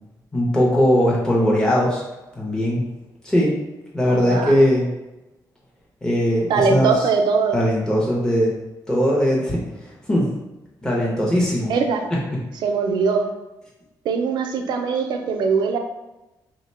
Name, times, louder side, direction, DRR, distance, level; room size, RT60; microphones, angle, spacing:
voice 1, 0.3-2.0 2.4-2.8 3.2-3.6 3.9-4.9 6.0-6.9 7.5-8.6 8.9-10.3 10.8-11.7 12.1-12.2, equal, 10° left, -5 dB, 0.6 m, -19 dB
voice 2, 4.0-4.5 6.5-7.6 11.7-12.0 12.6-13.3 14.0-15.8, right 5 dB, 80° right, 5 dB, 0.4 m, -21 dB
3.2 x 2.1 x 4.2 m, 1.0 s
wide cardioid pair, 160°, 7 cm